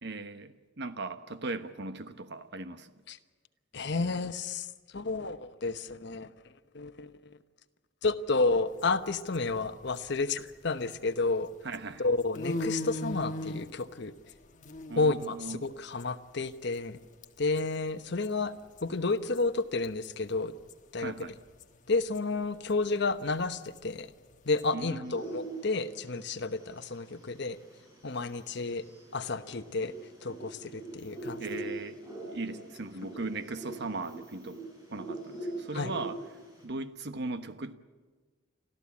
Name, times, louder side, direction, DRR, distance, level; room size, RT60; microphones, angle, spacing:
voice 1, 0.0-2.9 11.6-12.0 14.9-15.6 21.0-21.4 24.7-25.2 31.4-32.0 32.3-34.6 34.9-36.2 36.6-37.7, right 3 dB, 60° right, 1.2 m, -38 dB
voice 2, 3.7-4.7 4.9-6.3 6.7-7.1 8.0-11.5 12.0-14.1 15.0-17.0 17.4-18.5 18.8-20.5 20.9-21.1 21.9-24.1 24.4-27.6 28.0-28.8 29.1-29.9 30.2-31.4 33.0-33.1 35.7-35.9, left 3 dB, 60° left, 1.0 m, -31 dB
sound 1, 8.7-11.2 11.5-17.0 17.2-17.6 17.9-18.0 18.2-20.8 21.0-24.6, left 1 dB, 40° left, 1.2 m, -40 dB
sound 2, 25.0-36.6, right 2 dB, 20° right, 7.1 m, -43 dB
29.5 x 13.5 x 8.5 m
head